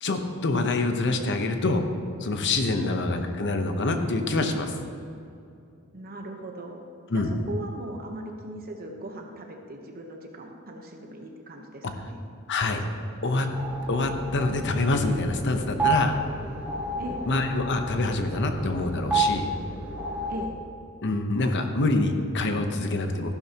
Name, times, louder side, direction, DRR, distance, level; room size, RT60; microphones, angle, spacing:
voice 1, 0.0-1.8 2.2-4.7 7.1-7.3 12.5-12.8 13.2-13.5 13.9-16.2 17.3-19.5 21.0-23.3, left 2 dB, 55° left, 6 dB, 0.9 m, -26 dB
voice 2, 5.9-6.8 7.1-12.2 17.0-17.2 20.3-20.6, right 1 dB, 45° right, 2 dB, 1.0 m, -39 dB
sound 1, 13.5-20.5, right 3 dB, 10° right, 1.2 m, -31 dB
14.5 x 12.0 x 2.9 m, 2.5 s
head